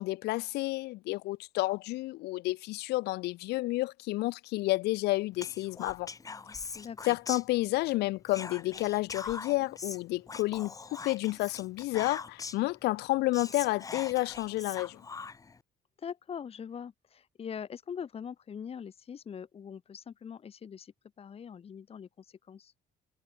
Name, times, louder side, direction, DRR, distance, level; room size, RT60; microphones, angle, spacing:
voice 1, 0.0-6.1 7.1-15.0, left 19 dB, 80° left, 0.5 m, -30 dB
Whispering, 5.4-7.9 8.3-12.7 13.0-13.1 13.3-15.6, left 4 dB, 20° left, 0.6 m, -42 dB
voice 2, 6.7-7.2 16.0-22.7, left 7 dB, 35° left, 1.2 m, -43 dB
cardioid pair, 110°, 17 cm